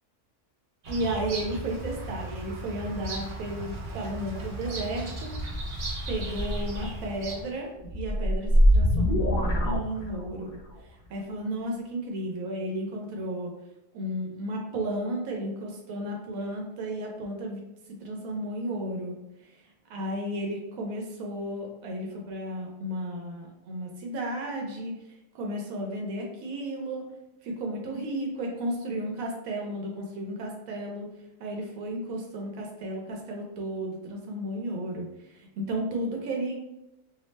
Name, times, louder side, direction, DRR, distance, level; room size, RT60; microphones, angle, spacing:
Bird vocalization bird call bird song, 0.8-7.6, right 1 dB, 55° right, 0.6 m, -35 dB
voice 1, 0.9-5.4 6.1-10.6 11.1-13.5 13.9-17.6 18.0-19.1 19.4-19.6 19.9-24.9 25.3-27.1 27.4-31.1 31.4-36.5, right 1 dB, 85° right, 0 dB, 1.0 m, -33 dB
sound 1, 7.8-10.5, equal, 60° left, 0.4 m, -22 dB
2.6 x 2.0 x 3.1 m, 0.92 s
omnidirectional pair, 1.4 m